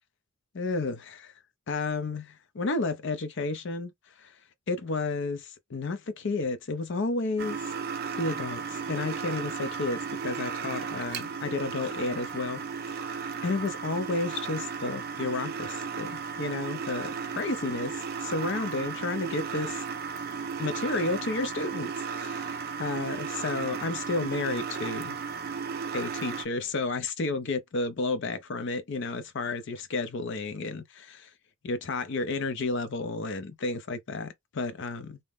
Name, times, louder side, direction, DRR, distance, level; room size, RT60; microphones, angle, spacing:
voice 1, 0.5-1.3 1.7-3.9 4.7-7.6 8.2-12.6 12.9-13.1 13.4-19.8 20.6-21.9 22.2-25.2 25.9-31.3 31.6-35.2, left 3 dB, 55° left, 0.5 m, -32 dB
sound 1, 7.4-26.4, right 6 dB, 45° right, 0.4 m, -35 dB
2.7 x 2.0 x 3.3 m
head